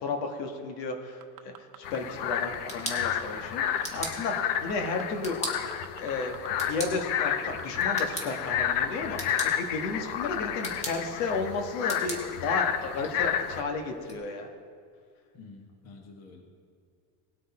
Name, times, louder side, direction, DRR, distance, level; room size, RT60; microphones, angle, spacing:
voice 1, 0.0-5.5 6.0-14.5, left 3 dB, 85° left, 4 dB, 1.6 m, -33 dB
sound 1, 1.2-2.0 2.3-3.2 3.5-4.1 4.4-6.7 6.9-7.0 7.4-8.5 9.0-9.1, right 13 dB, 50° right, 0.8 m, -45 dB
sound 2, 1.8-13.6, left 9 dB, 65° left, 0.7 m, -31 dB
sound 3, 2.4-14.2, equal, 15° left, 1.6 m, -42 dB
voice 2, 15.3-16.4, left 3 dB, 35° left, 3 dB, 1.3 m, -49 dB
18.5 x 6.4 x 4.3 m, 2.2 s
cardioid pair, 160°, 46 cm